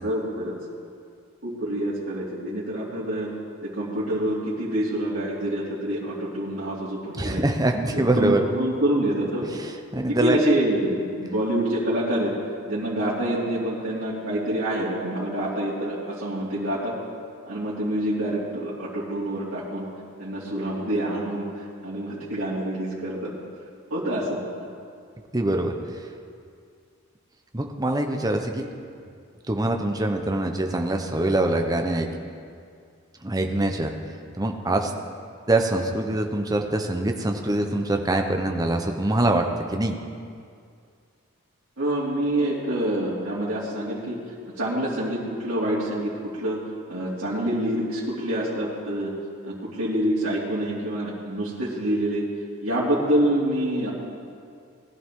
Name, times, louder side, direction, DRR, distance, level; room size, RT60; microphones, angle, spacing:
voice 1, 0.0-0.5 1.4-3.3 3.6-7.4 7.9-9.5 10.1-12.3 12.7-16.9 17.5-19.9 20.2-21.5 21.8-23.3 23.9-24.4 41.8-44.2 44.6-46.6 46.9-49.1 49.4-52.2 52.6-53.9, right 1 dB, 70° right, -11 dB, 2.8 m, -26 dB
voice 2, 7.1-8.4 9.6-10.4 25.3-26.0 27.5-28.7 29.5-32.1 33.2-33.9 34.4-34.9 35.5-40.0, right 1 dB, 20° right, 4 dB, 0.9 m, -24 dB
20.0 x 12.0 x 3.8 m, 2.3 s
head